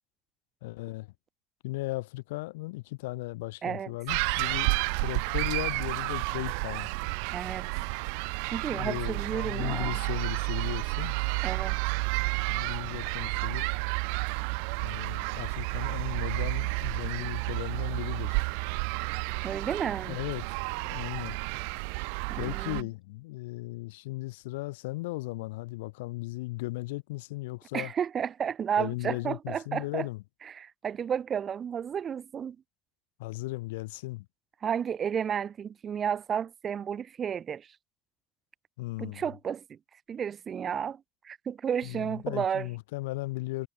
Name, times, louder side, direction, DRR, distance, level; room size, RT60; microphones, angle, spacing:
voice 1, 0.6-1.1 1.6-4.7 5.0-6.9 8.7-11.1 12.5-13.7 14.8-18.4 20.0-20.4 20.9-21.4 22.4-27.9 28.8-30.2 33.2-34.2 38.8-39.2 41.8-43.7, left 21 dB, 80° left, 1.5 m, -36 dB
voice 2, 3.6-3.9 7.3-7.7 8.4-10.0 11.4-11.8 19.4-20.2 22.3-22.9 27.7-30.1 30.4-32.6 34.6-37.7 39.0-39.8 40.1-42.7, right 8 dB, 50° right, 1.2 m, -32 dB
sound 1, 4.1-22.8, right 40 dB or more, 80° right, 0.3 m, -31 dB
hypercardioid pair, 50°, 0 cm